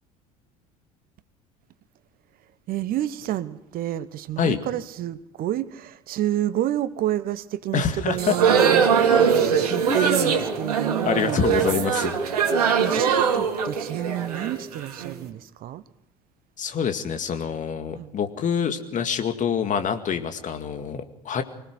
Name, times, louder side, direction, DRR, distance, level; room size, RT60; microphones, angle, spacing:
voice 1, 2.7-11.4 12.8-15.8 17.9-18.1, right 13 dB, 50° right, 15 dB, 1.1 m, -29 dB
voice 2, 7.7-8.4 9.1-9.3 9.9-10.4 10.8-12.1 16.6-21.4, left 7 dB, 40° left, 7 dB, 2.2 m, -26 dB
sound 1, 8.1-15.1, right 7 dB, 75° right, 2.2 m, -22 dB
25.0 x 18.0 x 6.4 m, 0.83 s
figure-of-eight pair, 65°, 20 cm